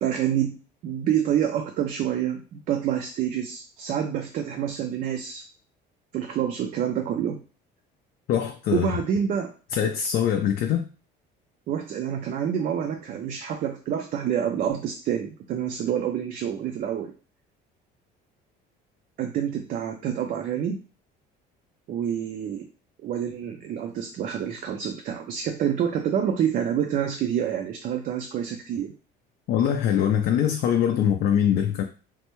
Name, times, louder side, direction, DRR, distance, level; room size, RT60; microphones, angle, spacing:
voice 1, 0.0-5.4 6.1-7.4 8.7-9.5 11.7-17.1 19.2-20.8 21.9-22.7 23.0-28.9, right 9 dB, 45° right, 4 dB, 0.4 m, -27 dB
voice 2, 8.3-9.0 9.7-10.8 29.5-31.8, left 9 dB, 55° left, 4 dB, 0.4 m, -23 dB
3.2 x 2.1 x 3.0 m, 0.36 s
cardioid pair, 135°, 19 cm